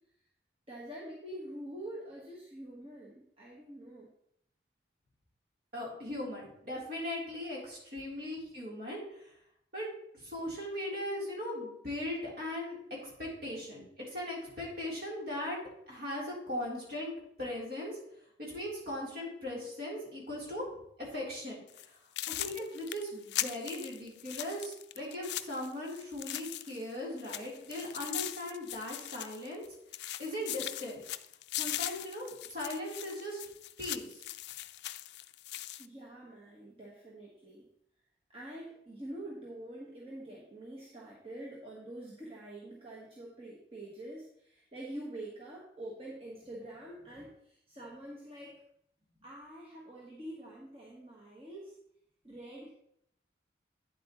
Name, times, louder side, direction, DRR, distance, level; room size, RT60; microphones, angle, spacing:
voice 1, 0.7-4.1 35.8-37.7 38.3-48.6 49.2-51.7 52.2-52.7, right 1 dB, 30° right, -5 dB, 1.3 m, -46 dB
voice 2, 5.7-9.3 9.7-9.9 10.1-12.8 13.0-13.8 14.1-15.6 15.9-17.1 17.4-18.0 18.4-20.6 21.0-22.0 22.3-29.6 30.2-31.0 31.6-33.4 33.8-34.2, left 1 dB, 55° right, -4 dB, 3.5 m, -39 dB
sound 1, 21.7-21.9 22.2-26.9 27.2-29.7 29.9-35.9, left 14 dB, 65° left, 0.3 m, -40 dB
9.4 x 7.7 x 3.0 m, 0.73 s
head